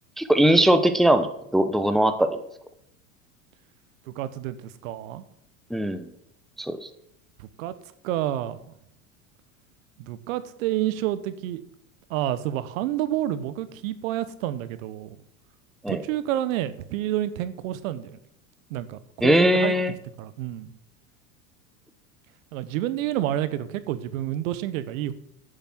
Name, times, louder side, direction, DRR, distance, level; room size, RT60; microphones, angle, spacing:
voice 1, 0.2-1.3 1.5-2.4 5.7-6.1 6.6-6.8 15.8-16.0 19.2-19.9, right 1 dB, ahead, 10 dB, 0.8 m, -20 dB
voice 2, 4.2-4.6 4.8-5.2 7.4-7.7 8.0-8.6 10.0-11.6 12.1-15.1 15.9-18.2 18.7-19.7 20.2-20.7 22.5-25.1, right 13 dB, 65° right, 14 dB, 1.1 m, -29 dB
10.5 x 6.9 x 6.0 m, 0.75 s
hypercardioid pair, 90°, 43 cm